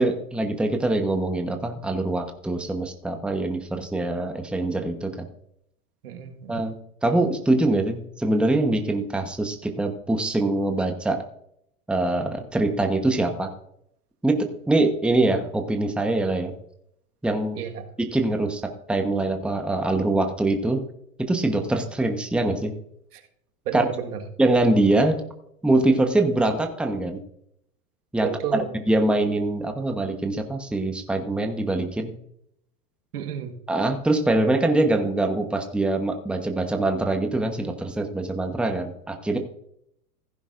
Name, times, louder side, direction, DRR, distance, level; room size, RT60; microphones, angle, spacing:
voice 1, 0.0-5.3 6.5-6.7 7.0-11.2 11.9-13.5 14.2-16.5 17.2-17.6 18.0-20.8 21.2-22.7 23.7-23.8 24.4-25.2 25.6-27.2 28.1-32.1 33.7-39.4, right 2 dB, ahead, 5 dB, 1.0 m, -23 dB
voice 2, 6.0-6.7 17.5-17.9 23.1-23.2 23.7-24.2 28.2-28.7 33.1-33.6, right 9 dB, 75° right, 5 dB, 1.7 m, -31 dB
15.5 x 10.5 x 2.5 m, 0.73 s
hypercardioid pair, 105°, 46 cm